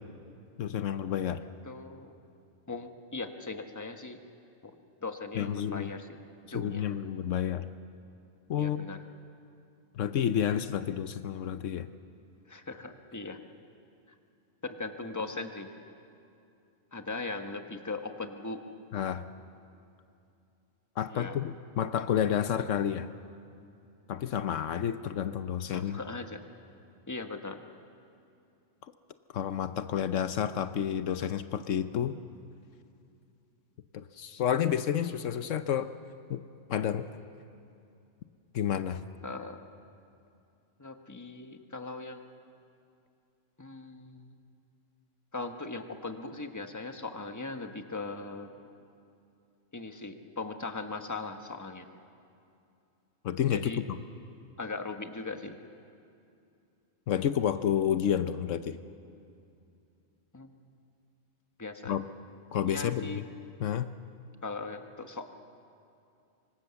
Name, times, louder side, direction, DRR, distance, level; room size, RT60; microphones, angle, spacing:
voice 1, 0.6-1.4 5.3-5.9 6.5-7.7 8.5-8.9 9.9-11.9 18.9-19.3 21.0-23.1 24.1-26.0 29.3-32.2 33.9-35.9 36.3-36.4 36.7-37.1 38.5-39.0 53.2-54.0 57.1-58.8 61.9-62.0 62.5-63.2 63.6-63.9, left 9 dB, 75° left, 11 dB, 1.1 m, -30 dB
voice 2, 1.7-2.1 2.7-4.2 4.6-4.8 5.0-6.1 6.5-6.8 8.5-9.0 12.5-13.4 14.6-15.7 16.9-18.6 21.1-21.4 25.6-26.4 27.1-27.6 39.2-39.6 40.8-42.2 43.6-44.3 45.3-48.5 49.7-51.8 53.5-53.8 54.6-55.6 60.3-60.5 61.6-62.0 62.6-63.2 64.4-65.3, left 3 dB, 15° left, 6 dB, 1.3 m, -39 dB
25.0 x 25.0 x 7.1 m, 2.6 s
omnidirectional pair, 1.3 m